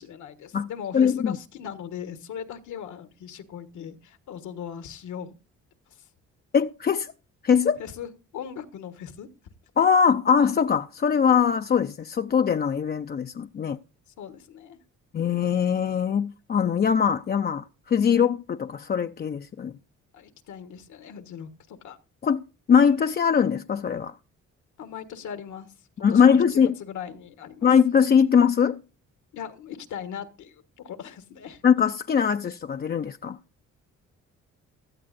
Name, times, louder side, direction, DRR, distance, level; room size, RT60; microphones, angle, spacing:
voice 1, 0.0-5.3 5.9-6.1 7.8-9.3 14.1-14.8 20.1-22.0 24.8-25.7 26.1-27.7 29.3-31.6, left 8 dB, 75° left, 1.4 m, -39 dB
voice 2, 0.9-1.4 6.5-7.1 7.4-7.8 9.8-13.8 15.1-19.7 22.2-22.4 22.7-24.1 26.0-26.7 27.6-28.8 31.6-33.4, left 7 dB, 35° left, 0.5 m, -21 dB
16.5 x 12.5 x 2.6 m
cardioid pair, 90°, 30 cm